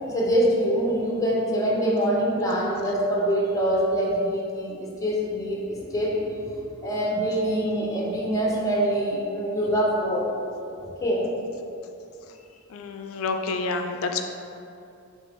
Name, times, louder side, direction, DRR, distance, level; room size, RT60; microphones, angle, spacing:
voice 1, 0.1-10.3 11.0-11.3, equal, 15° left, -3 dB, 0.6 m, -24 dB
voice 2, 12.7-14.2, left 4 dB, 80° left, 6 dB, 0.4 m, -28 dB
4.5 x 2.8 x 3.4 m, 2.6 s
head